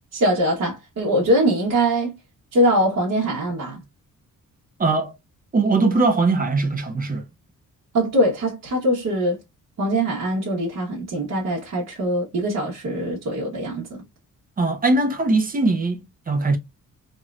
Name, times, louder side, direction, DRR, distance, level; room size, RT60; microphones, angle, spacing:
voice 1, 0.1-2.1 2.5-3.8 7.9-9.4 9.8-14.0, equal, 55° right, 1.3 m, -22 dB
voice 2, 4.8-5.1 5.5-7.2 14.6-16.0 16.3-16.6, right 3 dB, 25° right, 0.5 m, -20 dB
3.0 x 2.9 x 2.4 m
wide cardioid pair, 165°, 32 cm